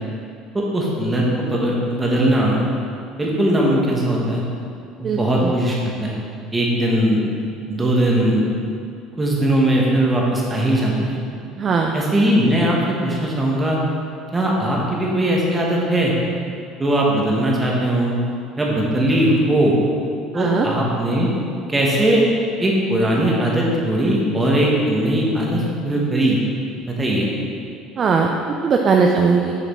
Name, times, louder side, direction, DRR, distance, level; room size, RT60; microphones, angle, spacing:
voice 1, 0.5-2.7 3.2-4.4 5.0-6.1 6.5-7.2 7.7-8.5 9.2-11.2 11.9-13.8 14.3-16.1 16.8-18.2 18.6-19.8 20.3-21.3 21.7-22.2 22.6-26.4 26.8-27.3, right 1 dB, 10° right, -3 dB, 0.9 m, -19 dB
voice 2, 5.0-5.5 11.6-12.0 20.3-20.7 28.0-28.3 28.6-29.6, right 5 dB, 30° right, 1 dB, 0.3 m, -18 dB
6.9 x 4.8 x 3.5 m, 2.4 s
cardioid pair, 160°, 0 cm